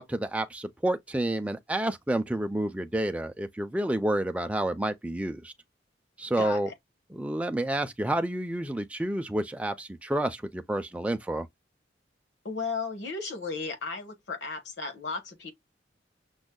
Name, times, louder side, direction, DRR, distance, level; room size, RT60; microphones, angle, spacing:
voice 1, 0.0-5.5 6.2-6.7 7.1-11.5, right 1 dB, 5° right, 0.3 m, -29 dB
voice 2, 6.4-6.7 12.4-15.5, left 4 dB, 70° left, 1.1 m, -35 dB
6.2 x 2.1 x 2.2 m
head